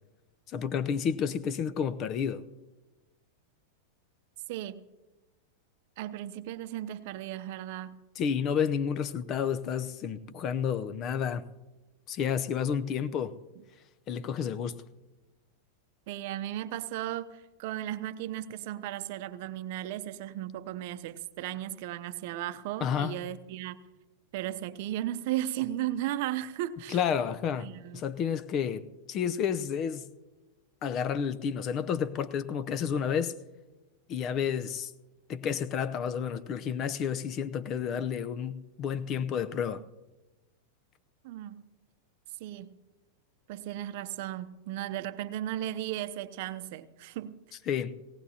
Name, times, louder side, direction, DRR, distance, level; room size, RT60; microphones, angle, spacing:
voice 1, 0.5-2.4 8.2-11.4 12.1-13.3 14.1-14.8 22.8-23.1 26.9-27.7 27.9-28.8 29.1-30.1 30.8-33.3 34.1-34.9 35.3-39.8 47.7-47.9, left 7 dB, 40° left, 0.7 m, -30 dB
voice 2, 4.5-4.8 6.0-8.0 16.1-23.8 24.3-27.0 27.6-28.0 41.2-41.7 42.4-42.8 43.5-47.4, right 13 dB, 60° right, 0.7 m, -35 dB
18.5 x 18.0 x 2.9 m
hypercardioid pair, 100°, 0 cm